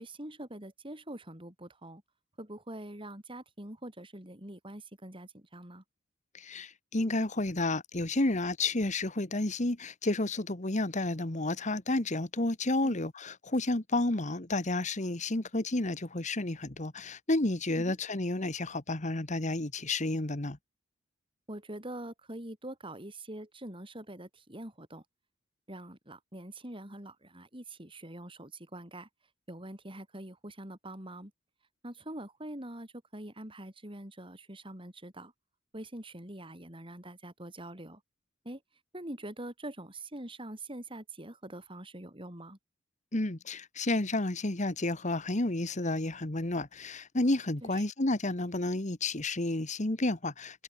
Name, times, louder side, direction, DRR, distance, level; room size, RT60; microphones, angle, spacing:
voice 1, 0.0-2.0 2.4-5.8 12.8-13.0 17.8-18.0 21.5-25.0 25.7-29.1 29.5-31.3 31.8-35.3 35.7-38.0 38.4-38.6 38.9-42.6 47.6-47.8, right 1 dB, 25° right, 5.8 m, -44 dB
voice 2, 6.3-20.6 43.1-50.6, left 2 dB, 40° left, 1.6 m, -31 dB
head